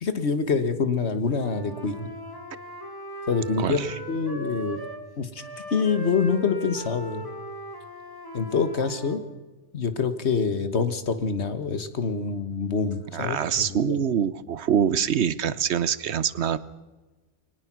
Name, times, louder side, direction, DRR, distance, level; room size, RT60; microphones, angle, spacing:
voice 1, 0.0-2.1 3.3-4.8 5.2-5.4 5.7-7.3 8.3-9.2 9.7-13.4 13.7-14.0, left 5 dB, 90° left, 10 dB, 1.7 m, -26 dB
Wind instrument woodwind instrument, 1.3-5.1 5.4-9.2, right 1 dB, 20° left, 3.0 m, -39 dB
voice 2, 3.6-4.0 13.1-16.6, right 8 dB, 85° right, 17 dB, 1.2 m, -25 dB
22.5 x 19.5 x 6.1 m, 1.2 s
omnidirectional pair, 1.1 m